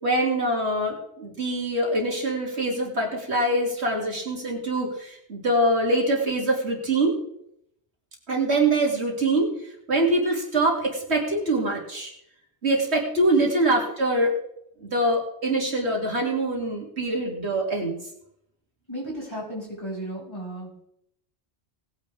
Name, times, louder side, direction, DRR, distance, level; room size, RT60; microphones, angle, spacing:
voice 1, 0.0-7.2 8.3-9.5 9.9-12.1 12.6-14.3 14.8-18.0, right 1 dB, 75° right, 0 dB, 3.1 m, -24 dB
voice 2, 18.9-20.8, right 1 dB, 25° left, -6 dB, 6.5 m, -35 dB
20.0 x 9.8 x 3.6 m, 0.74 s
omnidirectional pair, 1.1 m